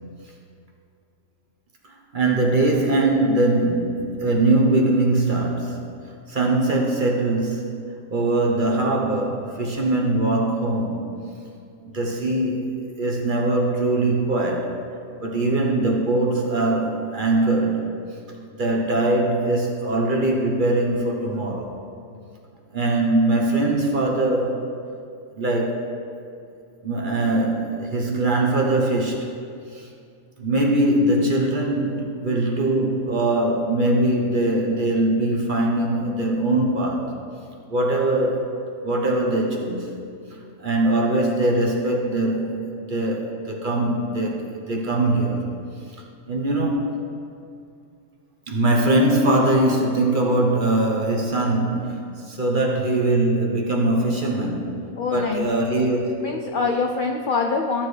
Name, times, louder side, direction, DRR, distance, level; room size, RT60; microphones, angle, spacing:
voice 1, 2.1-5.8 6.3-11.0 11.8-14.8 15.2-17.9 18.6-21.8 22.7-24.7 25.3-25.9 26.8-29.3 29.7-29.9 30.4-37.1 37.7-38.6 38.8-39.9 40.3-45.5 46.3-47.0 48.5-56.2, right 2 dB, 40° right, 0 dB, 1.0 m, -22 dB
voice 2, 55.0-55.5 56.2-57.9, left 4 dB, 60° left, 3 dB, 0.5 m, -24 dB
14.5 x 7.2 x 3.2 m, 2.4 s
omnidirectional pair, 1.5 m